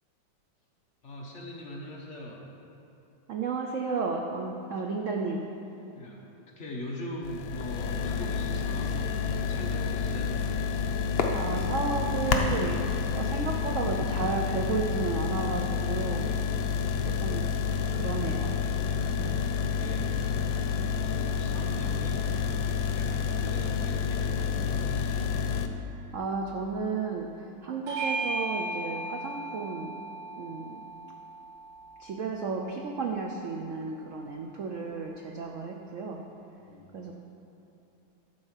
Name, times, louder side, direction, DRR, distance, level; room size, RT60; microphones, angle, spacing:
voice 1, 1.0-2.5 5.9-6.2 6.6-10.4 19.7-20.5 21.0-22.3 22.8-25.3 34.2-34.3 36.6-36.9, left 1 dB, 45° left, -2 dB, 1.2 m, -41 dB
voice 2, 3.3-5.5 11.3-16.3 17.0-17.5 17.9-18.6 18.9-19.4 25.9-29.9 30.4-30.8 32.0-36.2 36.9-37.2, right 4 dB, 65° right, 1 dB, 0.7 m, -33 dB
sound 1, 7.2-25.7, left 6 dB, 90° left, 1.4 m, -29 dB
sound 2, 7.4-14.1, left 3 dB, 70° left, 0.5 m, -36 dB
Bell / Doorbell, 27.9-32.7, right 2 dB, 90° right, 2.8 m, -36 dB
12.0 x 4.8 x 7.3 m, 2.9 s
omnidirectional pair, 2.1 m